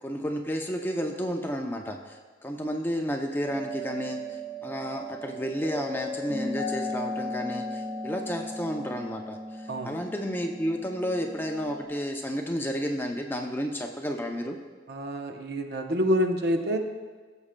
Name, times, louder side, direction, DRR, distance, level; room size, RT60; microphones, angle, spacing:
voice 1, 0.0-14.6, equal, 10° left, 2 dB, 0.5 m, -32 dB
sound 1, 3.4-11.9, left 1 dB, 20° right, 1.4 m, -36 dB
voice 2, 14.9-16.8, equal, 60° right, 5 dB, 0.7 m, -27 dB
16.0 x 7.2 x 2.2 m, 1.4 s
head